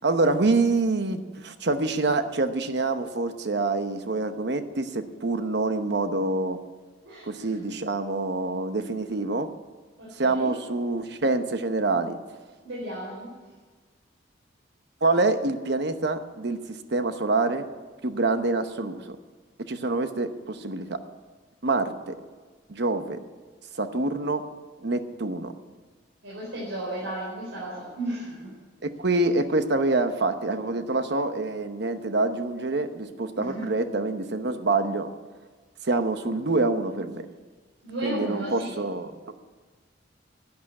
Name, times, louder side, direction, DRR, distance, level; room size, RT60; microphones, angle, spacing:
voice 1, 0.0-6.6 7.3-9.5 10.1-12.2 15.0-16.6 16.9-17.7 18.0-19.2 19.7-21.0 21.6-22.1 22.7-23.2 23.8-24.4 24.8-25.5 28.8-35.1 35.8-37.3 38.0-39.4, right 3 dB, 60° right, 9 dB, 0.9 m, -26 dB
voice 2, 7.0-7.6 10.0-10.5 12.6-13.3 26.2-28.5 33.3-33.7 37.8-38.8, right 1 dB, 85° right, -6 dB, 4.4 m, -34 dB
11.5 x 9.0 x 9.7 m, 1.4 s
head